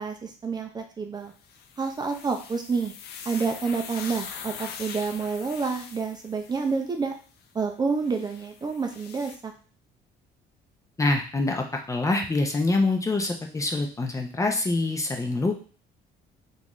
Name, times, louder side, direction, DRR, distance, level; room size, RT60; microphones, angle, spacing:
voice 1, 0.0-1.3 1.8-2.9 3.3-7.1 7.5-9.5, right 4 dB, 25° right, 4 dB, 0.5 m, -29 dB
sound 1, 1.4-6.9 8.0-9.4, left 7 dB, 75° left, 0.5 m, -42 dB
voice 2, 11.0-15.6, left 2 dB, 20° left, 3 dB, 0.6 m, -25 dB
3.8 x 2.6 x 3.0 m, 0.39 s
cardioid pair, 110°, 17 cm